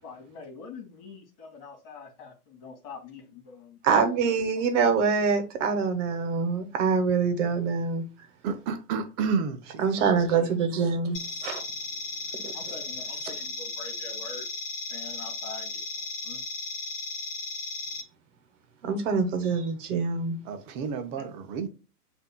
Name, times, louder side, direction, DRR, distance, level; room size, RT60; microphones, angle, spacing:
voice 1, 0.0-3.8 4.2-4.7 9.9-10.0 10.3-10.5 12.5-14.4 14.9-16.4 21.2-21.3, left 4 dB, 45° left, 2.2 m, -45 dB
voice 2, 3.8-8.0 9.8-11.6 12.3-12.5 18.8-20.4, right 5 dB, 50° right, 1.1 m, -25 dB
voice 3, 8.4-10.3 20.5-21.7, right 5 dB, 30° right, 0.7 m, -31 dB
sound 1, 11.1-18.0, left 3 dB, 30° left, 1.1 m, -35 dB
7.8 x 2.8 x 2.2 m
hypercardioid pair, 135°, 47 cm